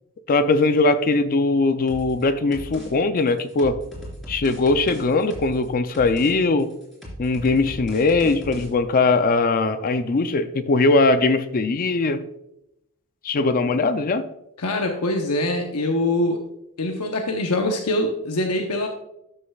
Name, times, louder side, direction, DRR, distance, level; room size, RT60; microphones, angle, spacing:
voice 1, 0.3-3.8 4.3-6.7 7.2-12.2 13.2-14.2, left 3 dB, 40° left, 11 dB, 0.4 m, -20 dB
sound 1, 1.9-2.2 2.5-2.9 3.2-5.7 5.9-6.3 6.6-8.7, equal, ahead, 3.3 m, -37 dB
voice 2, 14.6-16.4 16.8-18.9, left 1 dB, 85° left, 3 dB, 0.9 m, -23 dB
13.0 x 6.6 x 2.3 m, 0.83 s
head